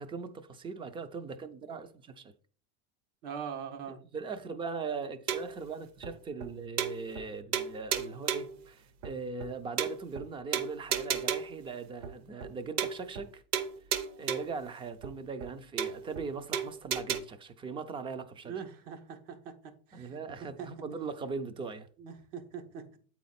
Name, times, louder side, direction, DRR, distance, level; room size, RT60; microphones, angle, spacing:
voice 1, 0.0-2.3 4.1-13.4 14.2-18.5 19.9-21.9, right 4 dB, 15° right, 0.3 m, -40 dB
voice 2, 3.2-4.0 18.4-19.5 19.9-20.2 20.6-20.7 22.0-23.0, right 7 dB, 80° right, 1.5 m, -42 dB
sound 1, 5.3-5.6 6.0-6.1 6.4-6.5 6.8-7.3 7.5-8.6 9.0-9.1 9.4-9.5 9.8-10.2 10.5-11.6 12.0-12.1 12.4-12.5 12.8-13.3 13.5-14.6 15.0-15.1 15.4-15.5 15.8-16.2 16.5-17.2, right 8 dB, 45° right, 0.8 m, -33 dB
8.5 x 4.2 x 4.1 m
supercardioid pair, 150°, 37 cm